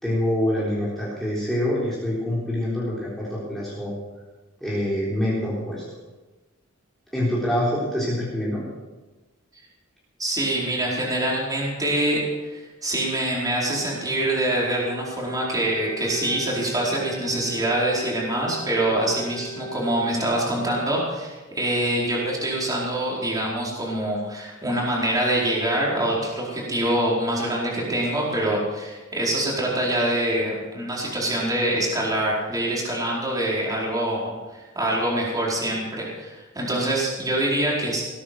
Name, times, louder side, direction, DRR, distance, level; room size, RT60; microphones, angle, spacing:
voice 1, 0.0-3.9 4.6-5.8 7.1-8.6, left 1 dB, ahead, -8 dB, 3.7 m, -25 dB
voice 2, 10.2-38.0, right 1 dB, 15° right, -5 dB, 4.6 m, -25 dB
Wind instrument woodwind instrument, 14.1-20.5, right 1 dB, 25° left, 2.7 m, -38 dB
19.0 x 9.8 x 6.0 m, 1.2 s
head